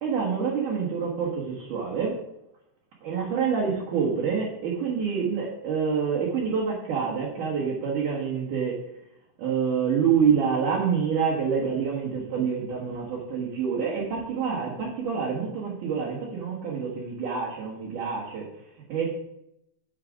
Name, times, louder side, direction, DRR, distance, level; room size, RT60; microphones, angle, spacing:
voice 1, 0.0-2.2 3.0-8.7 9.4-19.1, right 6 dB, 65° right, -5 dB, 2.0 m, -27 dB
9.8 x 4.9 x 5.2 m, 0.82 s
omnidirectional pair, 5.9 m